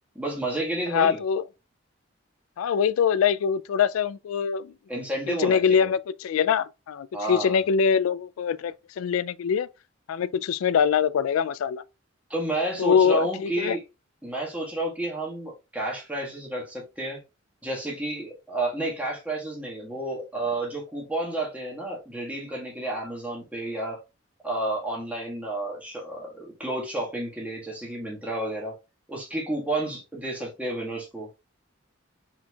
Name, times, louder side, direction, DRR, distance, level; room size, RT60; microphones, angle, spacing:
voice 1, 0.1-1.2 4.9-5.9 7.1-7.6 12.3-13.8 14.2-17.2 17.6-24.0 24.4-28.7 29.1-31.3, right 1 dB, 5° right, 1.5 m, -31 dB
voice 2, 0.9-1.4 2.6-4.7 5.3-9.7 10.1-11.8 12.8-13.8, left 7 dB, 85° left, 0.3 m, -23 dB
4.4 x 4.3 x 2.3 m
head